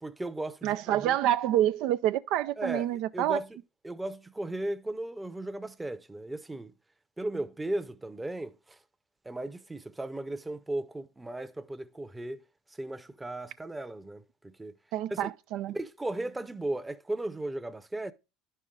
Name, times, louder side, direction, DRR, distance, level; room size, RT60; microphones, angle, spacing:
voice 1, 0.0-1.2 2.6-2.9 3.1-3.5 3.8-6.7 7.2-8.8 9.2-12.4 12.8-14.7 15.1-15.3 15.7-18.1, right 1 dB, 10° right, 0.7 m, -36 dB
voice 2, 0.6-3.4 14.9-15.8, right 12 dB, 65° right, 0.3 m, -27 dB
10.5 x 5.5 x 3.7 m
hypercardioid pair, 85°, 0 cm